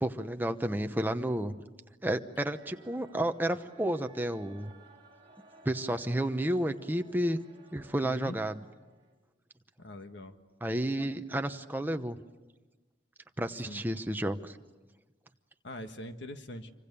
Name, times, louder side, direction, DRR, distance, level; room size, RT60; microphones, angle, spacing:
voice 1, 0.0-1.5 2.0-4.7 5.6-7.4 7.7-8.6 10.6-12.2 13.4-14.6, right 1 dB, 10° right, 7 dB, 0.9 m, -31 dB
sound 1, 2.5-9.1, right 2 dB, 25° right, 6.4 m, -58 dB
voice 2, 8.0-8.4 9.8-10.4 13.7-13.8 15.6-16.7, left 1 dB, 70° left, 7 dB, 1.6 m, -42 dB
26.5 x 25.0 x 6.9 m, 1.2 s
head